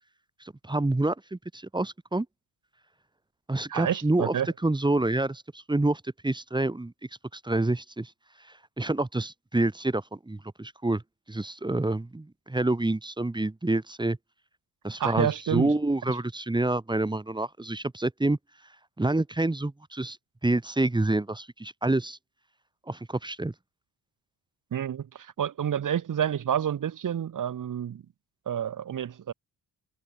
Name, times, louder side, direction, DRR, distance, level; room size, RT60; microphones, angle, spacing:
voice 1, 0.4-2.3 3.5-4.3 4.6-6.9 7.3-8.1 8.4-11.0 11.3-14.2 14.8-18.4 19.0-20.2 20.4-22.2 22.9-23.5, right 2 dB, 10° right, 3.4 m, -27 dB
voice 2, 3.7-4.5 15.0-15.7 16.1-16.2 24.7-28.0 28.5-29.3, right 9 dB, 50° right, 3.0 m, -29 dB
cardioid pair, 125°, 39 cm